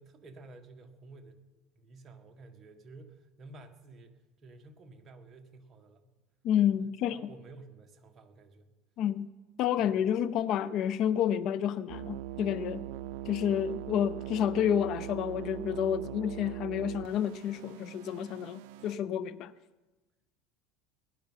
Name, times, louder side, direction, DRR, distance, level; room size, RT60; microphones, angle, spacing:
voice 1, 0.0-1.4 1.8-6.1 6.8-8.7 9.8-10.0, right 3 dB, 25° right, 1.7 m, -52 dB
voice 2, 6.4-7.3 9.0-9.3 9.6-12.8 13.3-19.5, left 9 dB, 50° left, 0.5 m, -30 dB
sound 1, 11.9-19.0, right 13 dB, 75° right, 0.4 m, -41 dB
19.0 x 11.0 x 5.7 m
supercardioid pair, 130°, 0 cm